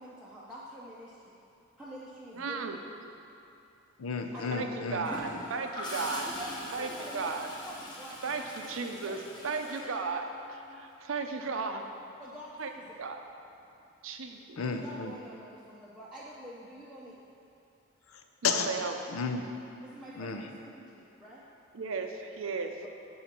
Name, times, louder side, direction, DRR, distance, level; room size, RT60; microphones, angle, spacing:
voice 1, 0.0-1.3 1.8-2.7 3.1-3.2 4.3-5.4 6.2-9.9 12.2-13.0 14.6-17.2 19.8-21.4, equal, 5° right, -9 dB, 0.6 m, -47 dB
voice 2, 2.4-2.8 4.5-6.3 6.7-7.5 8.2-9.2 9.4-11.8 12.6-12.7 13.0-13.2 14.0-14.6 18.4-18.9 21.7-22.7, right 4 dB, 75° right, 5 dB, 0.6 m, -35 dB
voice 3, 4.0-5.1 14.6-15.1 18.1-19.5 20.2-20.5, left 5 dB, 90° left, 5 dB, 0.6 m, -33 dB
Gurgling / Toilet flush, 5.0-10.8 12.8-13.0, left 1 dB, 20° left, 0.9 m, -43 dB
8.3 x 4.0 x 5.9 m, 2.7 s
head